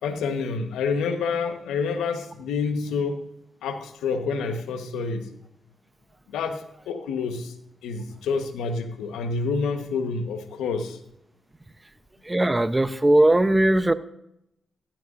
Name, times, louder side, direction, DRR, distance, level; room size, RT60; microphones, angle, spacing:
voice 1, 0.0-3.2 3.6-5.3 6.3-6.6 6.9-7.5 7.8-11.0, left 5 dB, 90° left, 6 dB, 1.3 m, -28 dB
voice 2, 12.3-13.9, right 1 dB, 20° right, 12 dB, 0.9 m, -19 dB
15.0 x 15.0 x 2.7 m, 0.79 s
supercardioid pair, 50°, 0 cm